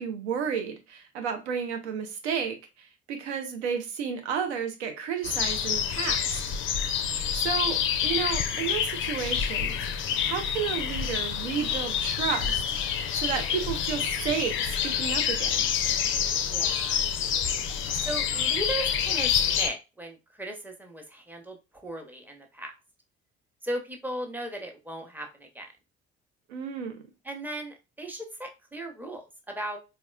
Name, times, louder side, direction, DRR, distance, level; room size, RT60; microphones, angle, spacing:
voice 1, 0.0-6.6 7.3-15.7 26.5-27.0, right 7 dB, 70° right, 0.6 m, -32 dB
sound 1, 5.2-19.7, left 8 dB, 35° left, 0.4 m, -27 dB
voice 2, 16.5-17.0 18.0-22.7 23.6-25.7 27.2-29.8, right 1 dB, 5° right, 0.8 m, -37 dB
4.0 x 2.3 x 2.2 m
figure-of-eight pair, 50°, 35 cm